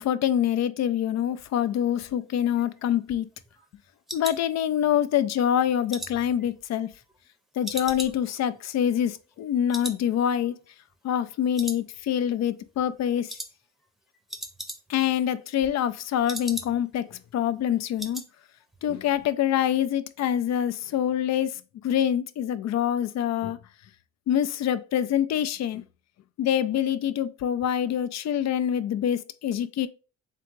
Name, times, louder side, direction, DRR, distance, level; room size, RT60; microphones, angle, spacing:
voice 1, 0.0-3.3 4.1-6.9 7.6-10.5 11.0-13.3 14.9-18.2 18.8-23.6 24.3-25.8 26.4-29.9, left 10 dB, 60° left, 0.5 m, -25 dB
sound 1, 2.4-5.1 5.5-7.3 7.6-9.4 9.7-10.1 10.3-10.4 10.9-11.3 11.5-12.3 12.6-12.9 13.3-13.5 13.8-13.9 14.1-15.1 15.4-17.0 17.3-17.4 17.7-18.3 18.6-18.9 19.1-19.2, right 1 dB, ahead, 0.7 m, -39 dB
3.7 x 3.4 x 3.0 m
cardioid pair, 90°, 30 cm